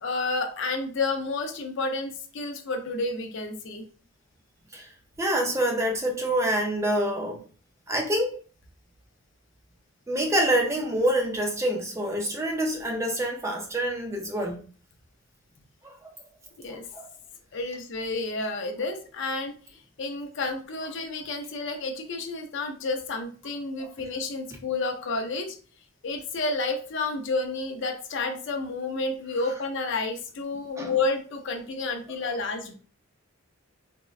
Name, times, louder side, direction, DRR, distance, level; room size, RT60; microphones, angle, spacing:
voice 1, 0.0-3.8 16.6-16.9 17.5-25.6 26.0-32.7, left 3 dB, 55° left, 4 dB, 0.5 m, -30 dB
voice 2, 5.2-7.4 7.9-8.4 10.1-14.6 15.8-16.1 16.7-17.1 23.8-23.9 30.8-30.9, right 1 dB, 15° right, 2 dB, 0.4 m, -26 dB
3.6 x 2.0 x 2.4 m, 0.39 s
head